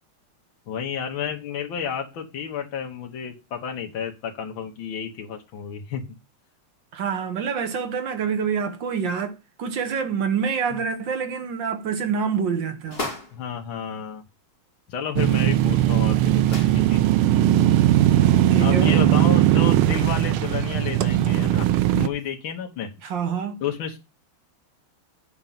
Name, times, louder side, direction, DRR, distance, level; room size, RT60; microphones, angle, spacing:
voice 1, 0.7-6.0 10.7-10.8 13.3-14.2 14.9-17.0 18.0-18.3 18.6-22.9 23.6-24.0, left 7 dB, 70° left, 2.0 m, -31 dB
voice 2, 6.9-13.1 18.5-19.1 23.0-23.6, right 6 dB, 65° right, 1.7 m, -27 dB
sound 1, 12.8-13.4 15.3-15.4 15.6-15.7 16.4-16.8, left 2 dB, 25° left, 2.9 m, -33 dB
sound 2, 15.2-22.1, right 13 dB, 80° right, 1.5 m, -19 dB
8.4 x 5.2 x 7.4 m
omnidirectional pair, 2.3 m